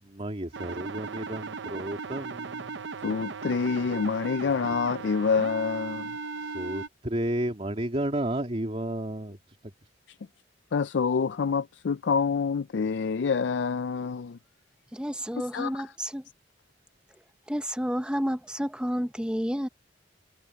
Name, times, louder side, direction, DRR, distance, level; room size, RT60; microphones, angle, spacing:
voice 1, 0.0-2.8 6.4-9.4, right 1 dB, 35° right, 2.8 m, -32 dB
sound 1, 0.5-6.9, right 4 dB, 70° right, 0.7 m, -37 dB
voice 2, 3.0-6.2 10.1-10.2 10.7-14.4 15.5-15.7, left 5 dB, 70° left, 0.4 m, -27 dB
voice 3, 14.9-16.3 17.5-19.7, equal, 5° right, 0.9 m, -30 dB
head